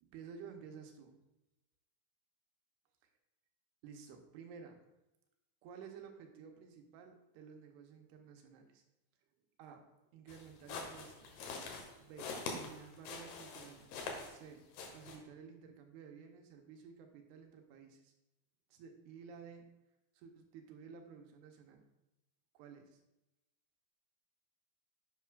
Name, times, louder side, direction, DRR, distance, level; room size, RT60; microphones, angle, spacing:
voice 1, 0.0-1.2 3.8-4.9 5.6-8.8 9.6-9.8 10.1-11.4 12.0-14.0 14.3-18.1 18.7-19.7 20.1-21.8 22.5-23.0, right 6 dB, 85° right, 4 dB, 2.9 m, -53 dB
sound 1, 10.3-14.5 14.7-15.2, left 4 dB, 75° left, 3.0 m, -45 dB
10.5 x 7.9 x 2.4 m, 0.94 s
omnidirectional pair, 4.6 m